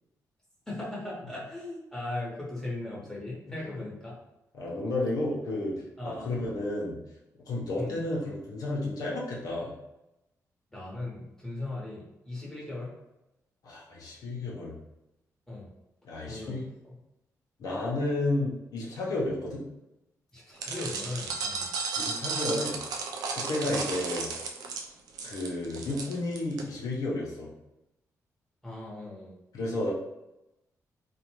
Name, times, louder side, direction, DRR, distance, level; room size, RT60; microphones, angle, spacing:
voice 1, 0.7-4.1 6.0-6.3 7.8-8.0 10.7-12.9 15.5-15.7 16.3-16.9 20.3-21.7 23.6-23.8 28.6-29.3, left 2 dB, 5° left, -5 dB, 1.0 m, -38 dB
voice 2, 4.5-5.7 6.0-7.0 7.5-9.7 13.6-14.7 16.0-16.6 17.6-19.6 22.0-22.8 23.3-24.3 25.2-27.5 29.5-29.9, left 2 dB, 75° left, -4 dB, 0.7 m, -32 dB
sound 1, 20.6-26.6, right 4 dB, 90° right, 0.4 m, -34 dB
2.5 x 2.2 x 2.9 m, 0.93 s
cardioid pair, 85°, 6 cm